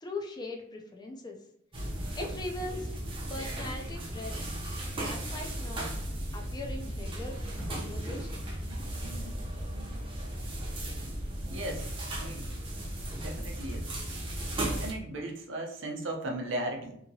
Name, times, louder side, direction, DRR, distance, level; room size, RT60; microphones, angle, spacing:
voice 1, 0.0-1.4 2.2-2.9 3.3-4.5 4.9-5.9 6.3-7.4 7.7-8.5, left 2 dB, 20° left, 2 dB, 0.3 m, -40 dB
sound 1, 1.7-14.9, right 1 dB, 25° right, 0.6 m, -36 dB
voice 2, 11.5-11.9 12.2-12.5 13.2-13.9 14.8-17.0, right 1 dB, 65° right, 1 dB, 0.6 m, -36 dB
2.8 x 2.7 x 2.7 m, 0.74 s
head